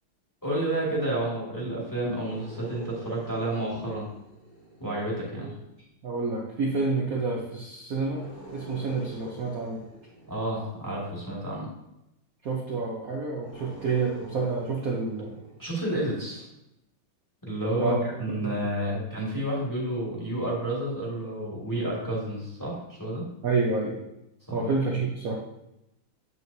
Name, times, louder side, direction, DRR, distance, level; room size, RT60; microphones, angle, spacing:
voice 1, 0.4-4.1 4.8-5.5 10.3-11.7 15.6-16.5 17.4-23.3 24.5-24.6, right 1 dB, 10° left, -5 dB, 1.7 m, -30 dB
sound 1, 2.1-5.6 8.0-11.1 13.3-16.1, right 1 dB, 35° left, 2.1 m, -48 dB
voice 2, 6.0-8.2 8.5-9.8 12.4-15.3 17.8-18.0 18.4-18.5 18.9-19.0 23.4-24.0 24.5-25.3, right 3 dB, 55° right, -2 dB, 1.0 m, -28 dB
7.7 x 7.6 x 2.7 m, 0.87 s
omnidirectional pair, 2.4 m